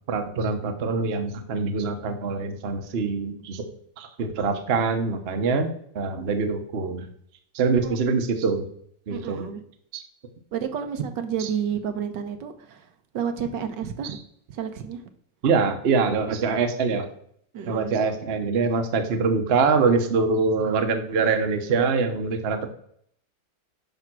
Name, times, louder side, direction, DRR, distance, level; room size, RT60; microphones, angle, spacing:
voice 1, 0.1-3.7 4.0-7.1 7.5-8.7 9.1-9.5 9.9-10.0 11.4-11.5 14.0-14.1 15.4-17.1 17.7-22.7, right 4 dB, 45° right, 6 dB, 0.9 m, -24 dB
voice 2, 9.1-9.6 10.5-12.9 13.1-14.2 14.5-15.0 16.3-16.6 17.5-18.0, right 7 dB, 70° right, 8 dB, 1.4 m, -30 dB
10.5 x 3.6 x 6.0 m, 0.65 s
omnidirectional pair, 2.1 m